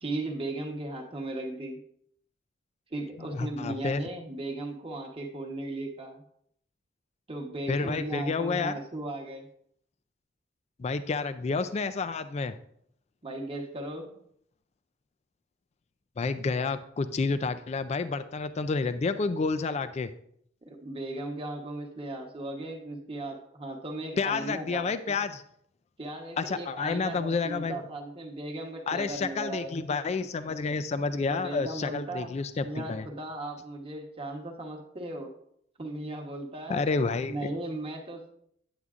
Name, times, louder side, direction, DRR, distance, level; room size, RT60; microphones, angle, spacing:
voice 1, 0.0-1.8 2.9-6.2 7.3-9.5 13.2-14.1 20.6-24.9 26.0-29.8 31.3-32.3 32.6-35.3 35.8-36.9 37.3-38.3, right 2 dB, 30° right, 1 dB, 1.0 m, -37 dB
voice 2, 3.3-4.0 7.7-8.7 10.8-12.5 16.2-20.1 24.2-25.4 26.4-27.8 28.9-33.1 36.7-37.5, left 4 dB, 35° left, 11 dB, 0.3 m, -30 dB
9.5 x 8.1 x 2.5 m, 0.70 s
head